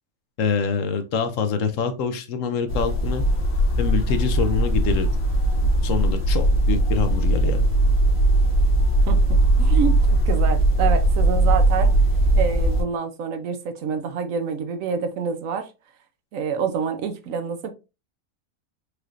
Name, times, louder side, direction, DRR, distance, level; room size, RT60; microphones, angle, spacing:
voice 1, 0.4-3.2 3.8-5.1 5.8-7.6, left 6 dB, 70° left, 1.0 m, -25 dB
sound 1, 2.7-12.8, right 1 dB, 50° left, 1.6 m, -19 dB
voice 2, 9.1-11.9 12.3-15.7 16.3-17.7, right 6 dB, 70° right, 1.0 m, -27 dB
4.8 x 3.1 x 2.5 m
omnidirectional pair, 1.5 m